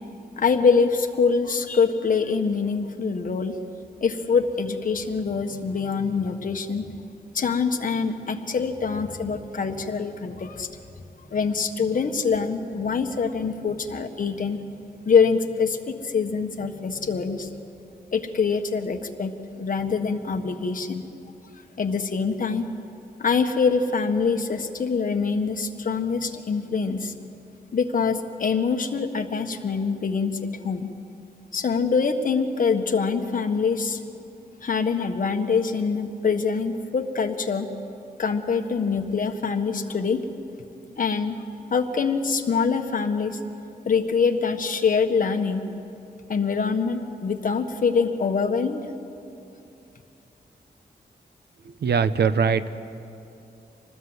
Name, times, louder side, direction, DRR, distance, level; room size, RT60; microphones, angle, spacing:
voice 1, 0.4-3.6 4.0-6.9 7.3-10.7 11.3-14.6 15.0-17.5 18.1-19.3 19.6-21.0 21.8-22.7 23.2-27.1 27.7-30.9 31.5-34.0 34.6-37.7 38.2-40.2 41.0-41.4 41.7-43.4 43.8-45.7 46.3-48.9, left 5 dB, 55° left, 6 dB, 1.5 m, -24 dB
voice 2, 51.6-52.8, right 6 dB, 80° right, 12 dB, 0.9 m, -22 dB
26.0 x 19.5 x 8.1 m, 2.7 s
wide cardioid pair, 155°, 17 cm